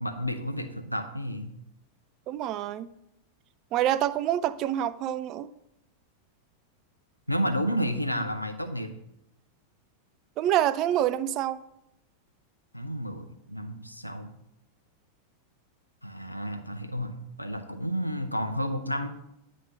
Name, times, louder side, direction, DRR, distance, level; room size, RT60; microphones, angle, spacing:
voice 1, 0.0-1.5 7.3-8.9 12.7-14.3 16.0-19.1, equal, 90° left, 6 dB, 0.6 m, -31 dB
voice 2, 2.3-2.9 3.7-5.5 10.4-11.6, right 12 dB, 35° right, 14 dB, 0.3 m, -26 dB
9.3 x 3.2 x 5.4 m, 0.84 s
figure-of-eight pair, 90°, 0 cm